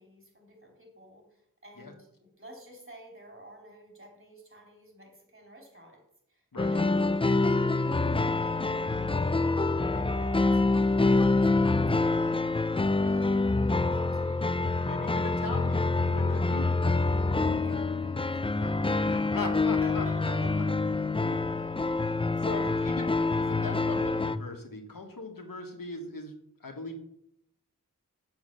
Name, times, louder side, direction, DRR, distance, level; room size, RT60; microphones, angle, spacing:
voice 1, 0.0-9.2 9.9-12.6 12.9-14.7 16.4-16.7 17.6-20.8 21.5-21.8 22.4-24.1, right 1 dB, 40° right, 1 dB, 3.6 m, -51 dB
sound 1, 6.6-24.4, left 3 dB, 15° left, 0.4 m, -26 dB
voice 2, 14.8-16.9 19.0-20.0 21.2-21.4 22.4-23.1 23.4-26.3 26.6-27.0, left 3 dB, 85° left, 3 dB, 1.6 m, -39 dB
7.3 x 7.1 x 6.7 m, 0.75 s
wide cardioid pair, 40°, 33 cm